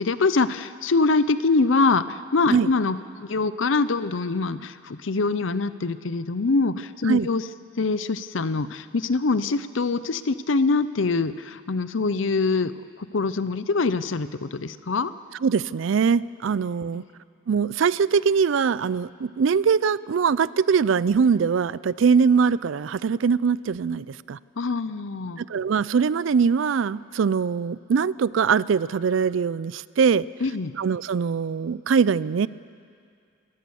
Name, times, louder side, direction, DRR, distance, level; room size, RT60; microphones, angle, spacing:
voice 1, 0.0-7.4 7.8-12.7 13.0-15.1 16.9-17.0 24.6-25.4 30.4-30.7, left 3 dB, 70° left, 14 dB, 0.7 m, -24 dB
voice 2, 15.4-17.0 17.5-24.4 25.5-30.2 30.8-32.5, right 6 dB, 75° right, 19 dB, 0.4 m, -22 dB
25.5 x 14.5 x 7.0 m, 2.3 s
head